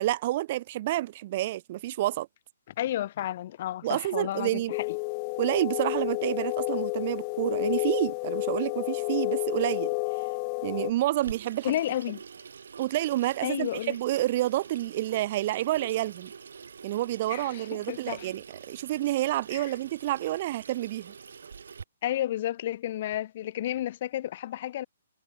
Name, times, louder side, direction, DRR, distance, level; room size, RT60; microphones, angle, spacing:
voice 1, 0.0-2.3 3.8-4.7 5.4-9.9 10.6-11.7 12.8-16.3 16.8-21.1, right 15 dB, 40° right, 5.4 m, -29 dB
voice 2, 2.8-5.0 11.6-12.2 13.4-14.0 17.3-18.3 19.5-19.7 22.0-24.9, left 12 dB, 45° left, 7.2 m, -32 dB
sound 1, 4.7-10.9, left 39 dB, 30° left, 3.2 m, -30 dB
Water tap faucet / Sink (filling or washing), 11.2-21.8, right 6 dB, 75° right, 5.7 m, -46 dB
hypercardioid pair, 150°, 0 cm